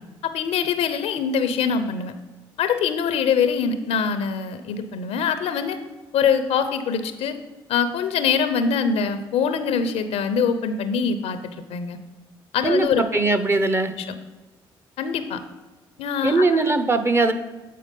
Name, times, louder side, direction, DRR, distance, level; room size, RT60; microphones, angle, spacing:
voice 1, 0.2-2.1 2.6-5.8 6.1-7.4 7.7-12.0 12.5-13.0 15.0-15.4 16.0-16.4, left 6 dB, 75° left, 9 dB, 0.7 m, -23 dB
voice 2, 12.6-13.9 16.2-17.3, right 3 dB, 25° right, 9 dB, 0.9 m, -20 dB
8.4 x 4.5 x 5.3 m, 1.2 s
supercardioid pair, 60°, 11 cm